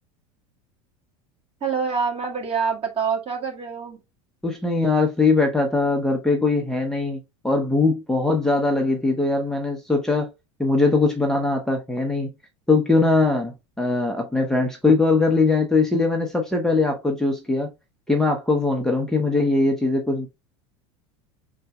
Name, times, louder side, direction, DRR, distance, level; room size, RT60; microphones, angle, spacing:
voice 1, 1.6-4.0, right 5 dB, 35° right, 1.9 m, -26 dB
voice 2, 4.4-10.3 10.6-12.3 12.7-17.7 18.1-20.3, left 3 dB, 5° left, 0.8 m, -21 dB
5.5 x 3.9 x 2.3 m
hypercardioid pair, 95°, 16 cm